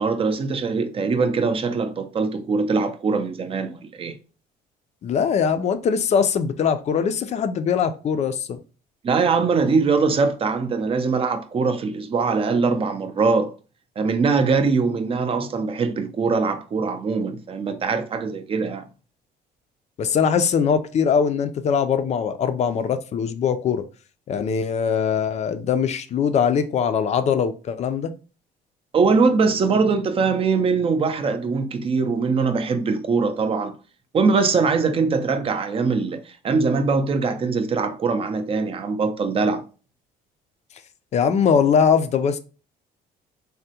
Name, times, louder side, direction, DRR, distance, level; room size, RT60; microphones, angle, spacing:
voice 1, 0.0-4.1 9.0-13.5 14.0-18.9 28.9-33.7 34.1-39.6, right 4 dB, 35° right, 0.4 m, -22 dB
voice 2, 5.0-8.6 20.0-23.8 24.3-28.1 41.1-42.4, left 7 dB, 40° left, 0.4 m, -21 dB
3.4 x 2.1 x 2.7 m
cardioid pair, 110°, 17 cm